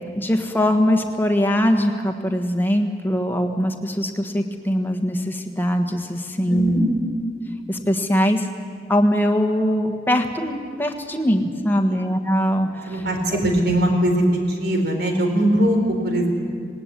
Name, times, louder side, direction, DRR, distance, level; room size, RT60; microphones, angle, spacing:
voice 1, 0.2-6.9 7.7-8.5 8.9-13.0 13.3-13.4, equal, 10° left, 4 dB, 1.4 m, -21 dB
voice 2, 6.5-6.8 12.9-16.3, right 1 dB, 70° right, 3 dB, 4.1 m, -20 dB
19.0 x 19.0 x 9.8 m, 2.2 s
head